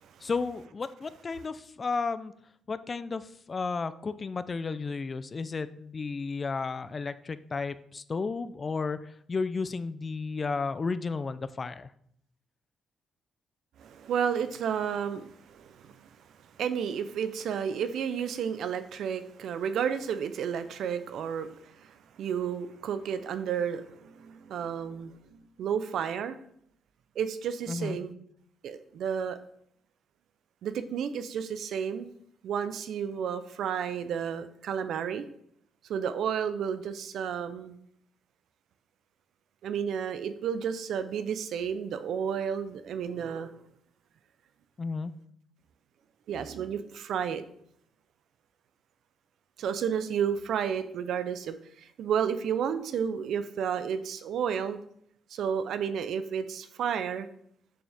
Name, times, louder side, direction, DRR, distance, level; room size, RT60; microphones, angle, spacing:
voice 1, 0.2-2.3 2.7-11.9 27.7-28.0 44.8-45.1, left 4 dB, 35° left, 13 dB, 0.4 m, -33 dB
voice 2, 13.8-16.1 16.6-21.5 21.8-26.4 27.2-28.2 28.6-29.4 30.6-32.1 32.4-35.2 35.9-37.8 39.6-43.5 46.3-47.4 49.6-54.8 55.3-57.3, right 7 dB, 70° right, 11 dB, 0.6 m, -32 dB
7.0 x 6.2 x 3.5 m, 0.70 s
cardioid pair, 90°, 0 cm